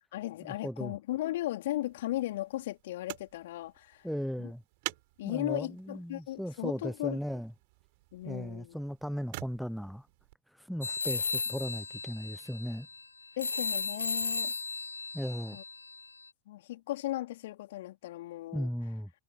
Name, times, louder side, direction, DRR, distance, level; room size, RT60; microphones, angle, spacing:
voice 1, 0.1-4.1 4.4-4.5 5.2-7.2 8.1-8.7 13.4-14.5 15.5-15.6 16.5-18.7, left 15 dB, 55° left, 4.1 m, -36 dB
voice 2, 0.6-1.0 4.0-4.6 5.2-7.5 8.2-10.1 10.5-12.9 15.1-15.6 18.5-19.1, equal, ahead, 0.9 m, -36 dB
sound 1, 1.6-10.4 11.3-11.4, right 25 dB, 50° right, 6.4 m, -48 dB
sound 2, 10.8-16.3, left 4 dB, 80° left, 0.5 m, -35 dB
figure-of-eight pair, 90°, 0 cm